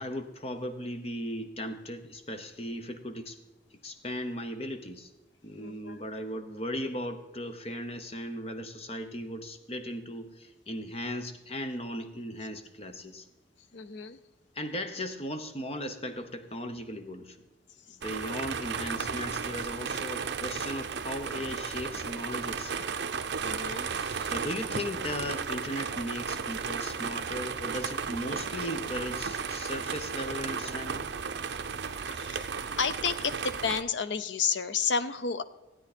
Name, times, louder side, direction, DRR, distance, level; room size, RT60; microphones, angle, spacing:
voice 1, 0.0-3.4 3.8-5.1 5.4-13.2 14.6-17.4 17.9-22.9 23.9-31.1, left 1 dB, 30° left, 8 dB, 0.9 m, -37 dB
voice 2, 5.6-6.1 13.7-14.2 23.4-23.9 32.1-32.5 32.8-35.4, left 6 dB, 70° left, 13 dB, 0.6 m, -31 dB
sound 1, 18.0-33.8, right 6 dB, 60° right, 0.6 m, -34 dB
16.0 x 9.1 x 4.3 m, 1.1 s
head